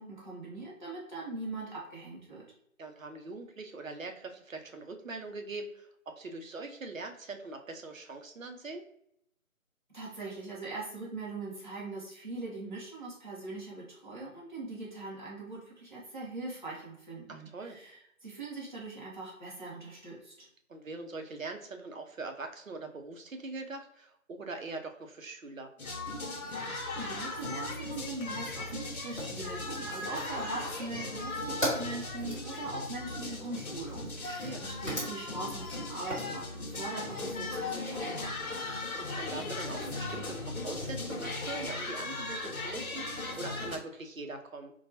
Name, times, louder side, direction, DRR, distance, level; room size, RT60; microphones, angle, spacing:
voice 1, 0.0-2.5 9.9-20.5 26.4-38.6, right 3 dB, 35° right, -7 dB, 0.7 m, -41 dB
voice 2, 2.8-8.8 17.3-17.8 20.7-25.7 34.2-34.6 39.0-44.7, right 3 dB, 65° right, 5 dB, 0.7 m, -42 dB
sound 1, 25.8-43.8, left 2 dB, 85° left, 0.9 m, -38 dB
Fire, 27.0-36.3, equal, 20° left, 1.1 m, -42 dB
4.4 x 2.3 x 2.7 m, 0.73 s
figure-of-eight pair, 170°, 42 cm